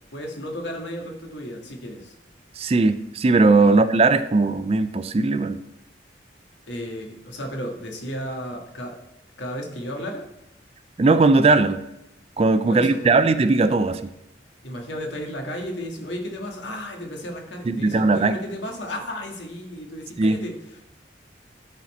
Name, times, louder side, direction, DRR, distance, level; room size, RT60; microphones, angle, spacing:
voice 1, 0.1-2.1 3.6-3.7 6.7-9.0 9.4-10.2 12.7-13.2 14.6-20.5, equal, 65° left, 2 dB, 1.6 m, -33 dB
voice 2, 2.6-5.6 11.0-11.8 12.4-14.0 17.7-18.4 20.2-20.4, right 3 dB, 30° right, 11 dB, 0.3 m, -18 dB
13.0 x 4.3 x 4.2 m, 0.88 s
head